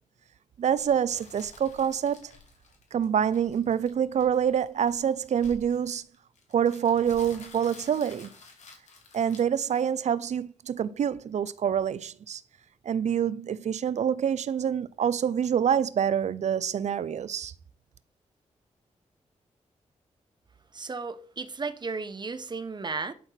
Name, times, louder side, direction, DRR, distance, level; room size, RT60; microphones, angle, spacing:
voice 1, 0.6-2.3 2.9-6.0 6.5-8.3 9.1-12.4 12.9-17.5, right 8 dB, 70° right, 0.6 m, -26 dB
sound 1, 0.8-10.2, left 4 dB, 75° left, 2.8 m, -51 dB
voice 2, 20.7-23.1, right 4 dB, 35° right, 1.1 m, -34 dB
11.5 x 4.4 x 5.9 m
cardioid pair, 80°, 12 cm